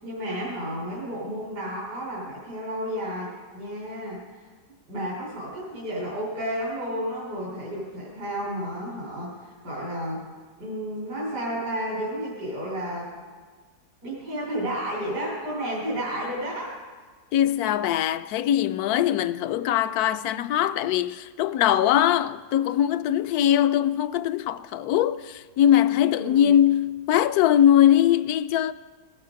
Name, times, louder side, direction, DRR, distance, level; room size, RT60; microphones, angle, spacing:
voice 1, 0.0-4.2 4.9-10.2 10.6-13.1 14.0-16.8 26.0-26.6, equal, 90° right, 4.6 m, -32 dB
voice 2, 17.3-28.7, left 11 dB, 75° left, 1.0 m, -21 dB
19.5 x 9.6 x 5.1 m
omnidirectional pair, 1.7 m